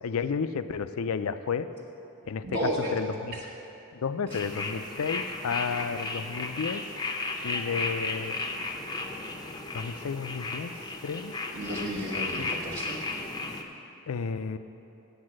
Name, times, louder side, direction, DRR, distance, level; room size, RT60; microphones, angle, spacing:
voice 1, 0.0-1.7 2.3-2.4 2.9-3.3 3.9-6.8 7.4-8.4 9.7-10.7 11.0-11.4 12.4-12.5 14.1-14.6, left 5 dB, 70° left, 12 dB, 0.4 m, -32 dB
voice 2, 2.4-3.5 4.3-4.4 11.5-13.1, equal, 45° right, -5 dB, 1.0 m, -33 dB
sound 1, 4.3-13.6, left 3 dB, 20° left, 0.5 m, -34 dB
8.7 x 8.1 x 7.5 m, 3.0 s
head